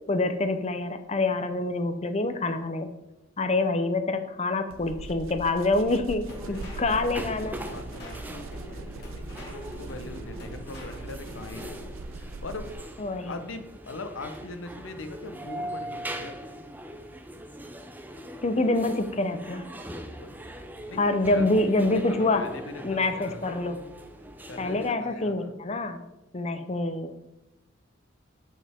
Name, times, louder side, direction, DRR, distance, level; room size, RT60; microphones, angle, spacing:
voice 1, 0.1-2.9 3.4-7.6 13.0-13.3 18.4-19.7 21.0-22.4 22.8-23.8 24.6-26.0 26.3-27.1, left 2 dB, 35° left, 9 dB, 0.6 m, -26 dB
sound 1, 4.7-13.0, right 3 dB, 85° right, 0.5 m, -41 dB
sound 2, 6.3-11.8, left 1 dB, 55° left, 2.3 m, -44 dB
sound 3, 6.3-24.9, equal, 10° right, 0.6 m, -41 dB
voice 2, 6.4-6.9 7.7-11.9 12.2-12.7 13.3-16.5 20.1-20.4 20.9-21.4 21.9-22.0 22.3-23.4 24.5-25.6, left 3 dB, 80° left, 8 dB, 0.8 m, -41 dB
8.1 x 6.3 x 3.5 m, 0.96 s
head